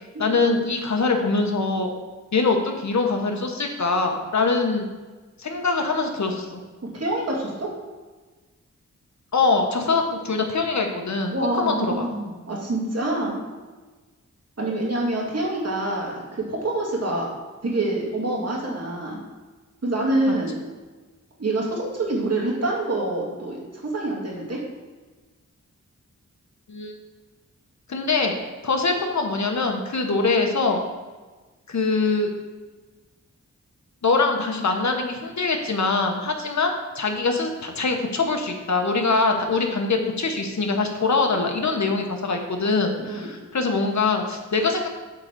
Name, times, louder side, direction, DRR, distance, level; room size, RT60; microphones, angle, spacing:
voice 1, 0.2-1.9 2.3-4.9 5.4-6.6 9.3-12.1 20.3-20.4 26.7-26.9 27.9-28.4 28.6-30.8 31.7-32.3 34.0-44.9, left 3 dB, 60° left, 3 dB, 1.2 m, -23 dB
voice 2, 6.9-7.7 11.3-13.3 14.6-17.3 17.6-19.2 19.8-20.6 21.4-24.6 43.0-43.3, right 2 dB, 50° right, -3 dB, 2.3 m, -26 dB
8.2 x 4.0 x 6.6 m, 1.3 s
wide cardioid pair, 80°, 31 cm